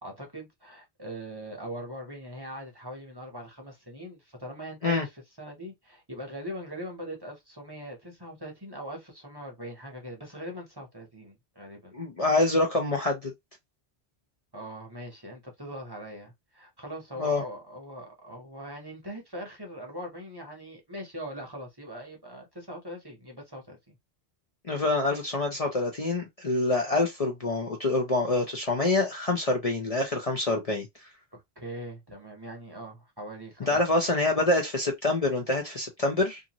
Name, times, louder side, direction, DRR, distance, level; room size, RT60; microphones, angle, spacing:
voice 1, 0.0-11.9 14.5-24.0 31.3-33.8, equal, 25° right, 0.9 m, -41 dB
voice 2, 11.9-13.3 17.2-17.4 24.6-30.9 33.7-36.4, left 2 dB, 40° left, 0.6 m, -26 dB
2.6 x 2.5 x 2.8 m
omnidirectional pair, 1.1 m